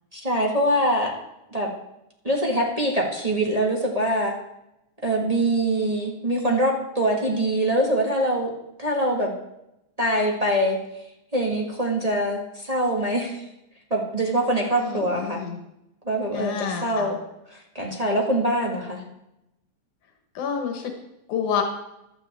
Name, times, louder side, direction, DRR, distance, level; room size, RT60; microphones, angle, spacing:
voice 1, 0.1-1.1 1.5-1.7 2.2-4.3 5.0-8.5 8.8-9.3 10.0-10.8 11.3-13.4 13.9-15.4 16.0-17.2 17.5-19.0, right 1 dB, 20° right, -2 dB, 1.2 m, -23 dB
voice 2, 14.8-15.6 16.3-17.1 20.3-20.9 21.3-21.6, left 7 dB, 85° left, 3 dB, 2.8 m, -28 dB
16.0 x 12.0 x 3.6 m, 0.88 s
omnidirectional pair, 3.4 m